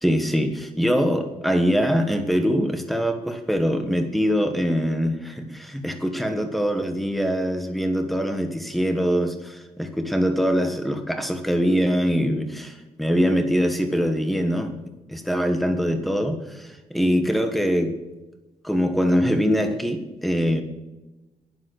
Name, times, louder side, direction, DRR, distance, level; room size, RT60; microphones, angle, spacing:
voice 1, 0.0-14.7 15.1-17.9 18.6-20.6, equal, ahead, 6 dB, 1.3 m, -23 dB
11.0 x 10.5 x 6.4 m, 1.1 s
wide cardioid pair, 155°, 14 cm